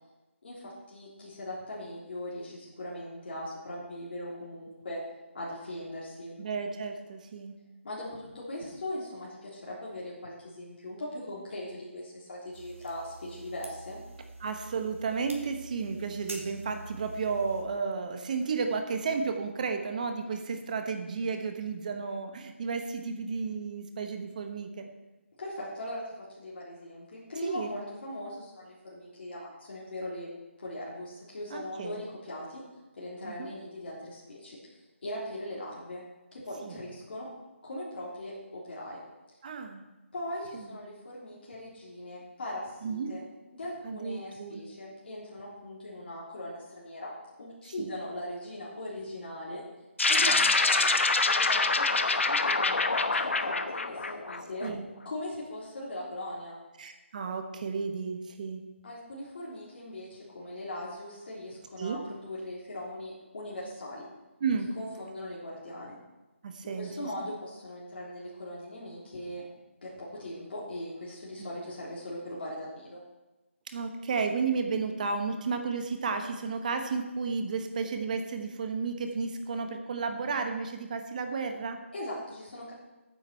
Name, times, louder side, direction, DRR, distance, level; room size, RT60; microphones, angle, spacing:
voice 1, 0.4-5.0 5.3-6.4 7.8-14.0 25.4-30.3 30.6-32.6 33.0-36.0 36.3-37.3 37.6-39.0 40.1-43.2 43.5-47.1 47.4-49.6 50.1-50.9 51.3-54.7 55.0-56.6 58.8-64.0 64.7-66.0 66.6-69.5 69.8-73.0 81.9-82.7, left 1 dB, 50° left, -6 dB, 3.5 m, -40 dB
voice 2, 6.4-7.6 14.4-24.9 27.4-27.7 31.5-32.0 33.2-33.5 36.6-36.8 39.4-39.8 40.5-40.8 42.8-43.1 43.8-44.6 47.8-47.9 50.2-50.5 54.6-54.8 56.8-58.6 61.8-62.0 64.4-64.7 66.4-67.1 71.4-71.5 73.7-81.8, right 5 dB, 35° right, 6 dB, 1.3 m, -33 dB
sound 1, 12.5-17.6, right 2 dB, 80° right, 3.0 m, -46 dB
sound 2, 50.0-54.7, left 3 dB, 65° left, 1.1 m, -25 dB
15.0 x 9.1 x 4.5 m, 1.1 s
figure-of-eight pair, 155°, 7 cm